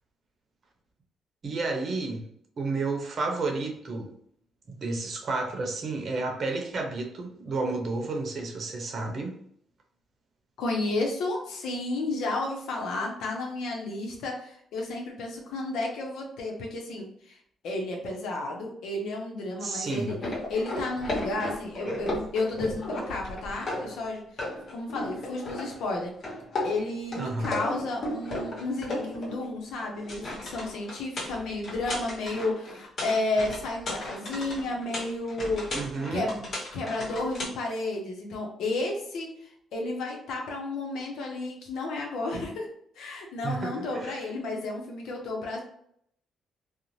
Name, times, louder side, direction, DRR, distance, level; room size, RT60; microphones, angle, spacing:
voice 1, 1.4-2.3 2.6-4.1 4.7-9.3 19.6-20.2 27.2-27.6 35.7-36.3 43.4-44.2, right 3 dB, 50° right, 2 dB, 0.7 m, -31 dB
voice 2, 10.6-17.4 17.6-20.2 20.5-26.1 26.6-35.7 36.1-42.7 43.0-45.6, left 2 dB, 80° left, 0 dB, 0.6 m, -32 dB
sound 1, 20.1-24.1 24.4-25.9 26.2-29.5 29.8-37.5, left 1 dB, 50° left, 1.0 m, -35 dB
2.6 x 2.0 x 3.0 m, 0.69 s
cardioid pair, 90°, 0 cm